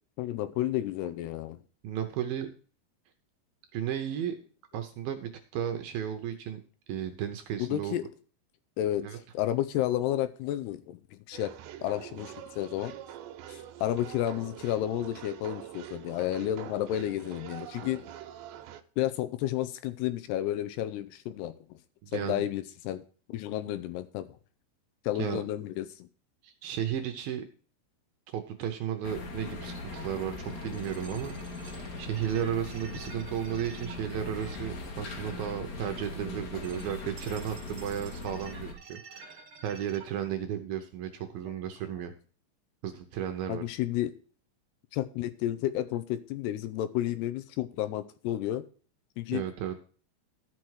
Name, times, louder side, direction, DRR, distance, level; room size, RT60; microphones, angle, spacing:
voice 1, 0.2-1.6 7.6-8.0 8.8-11.5 11.8-12.9 13.5-18.1 19.0-21.7 22.1-23.0 23.3-24.3 25.0-26.1 43.5-44.1 44.9-48.6 49.2-49.4, left 13 dB, 80° left, 11 dB, 2.6 m, -31 dB
voice 2, 1.8-2.5 3.7-4.4 4.7-6.6 6.9-8.0 9.0-9.2 22.0-22.4 25.2-25.4 26.4-27.5 28.3-42.1 42.8-43.6 49.3-49.8, right 10 dB, 75° right, 6 dB, 2.3 m, -34 dB
sound 1, 11.3-18.8, right 11 dB, 90° right, 3.0 m, -45 dB
sound 2, 29.0-38.7, left 3 dB, 50° left, 2.4 m, -40 dB
sound 3, 29.5-40.3, right 6 dB, 55° right, 1.7 m, -51 dB
13.0 x 6.1 x 4.7 m, 0.41 s
omnidirectional pair, 5.1 m